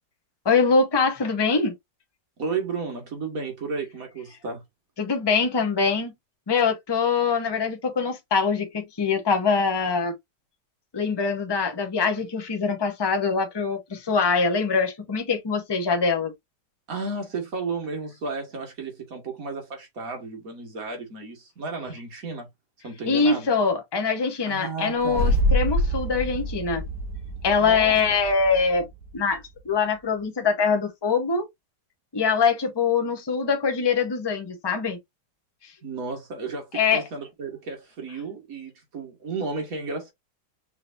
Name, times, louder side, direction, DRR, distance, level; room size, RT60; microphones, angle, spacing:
voice 1, 0.4-1.7 5.0-6.1 6.5-10.1 10.9-16.3 23.1-26.8 27.4-28.9 29.1-31.4 32.1-35.0 36.7-37.0, left 5 dB, 20° left, 0.7 m, -23 dB
voice 2, 2.4-4.6 16.9-22.5 22.8-23.5 24.5-25.2 27.6-28.2 35.8-40.1, right 4 dB, 50° right, 2.0 m, -33 dB
sound 1, 25.0-29.4, equal, 65° right, 3.2 m, -26 dB
5.7 x 3.4 x 2.6 m
omnidirectional pair, 1.9 m